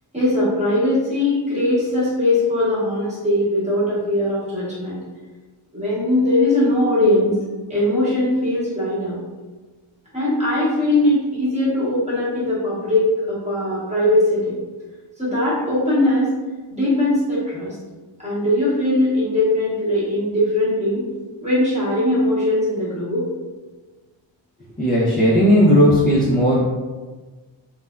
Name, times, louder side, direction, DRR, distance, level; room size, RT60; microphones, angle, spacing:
voice 1, 0.1-5.0 5.7-7.3 7.7-9.2 10.1-14.5 15.2-16.3 16.7-17.7 18.2-21.1 21.4-23.3, left 1 dB, 15° right, -9 dB, 1.0 m, -20 dB
voice 2, 24.8-26.6, equal, 20° left, -7 dB, 0.4 m, -15 dB
3.2 x 2.1 x 2.3 m, 1.3 s
wide cardioid pair, 135°, 49 cm